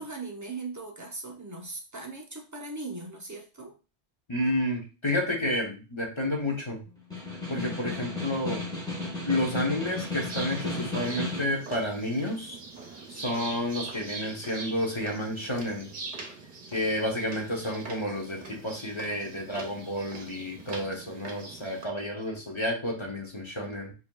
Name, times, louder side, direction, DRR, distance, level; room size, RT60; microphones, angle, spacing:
voice 1, 0.0-3.7, right 3 dB, 20° right, 0 dB, 0.7 m, -39 dB
voice 2, 4.3-6.8 7.5-8.6 9.2-12.6 13.1-15.9 16.7-23.9, left 1 dB, 30° left, -1 dB, 0.8 m, -30 dB
Snare drum, 7.0-11.6, left 2 dB, 5° left, 1.3 m, -34 dB
sound 1, 10.3-21.8, right 3 dB, 45° right, 0.9 m, -42 dB
4.9 x 2.9 x 2.3 m, 0.32 s
omnidirectional pair, 1.2 m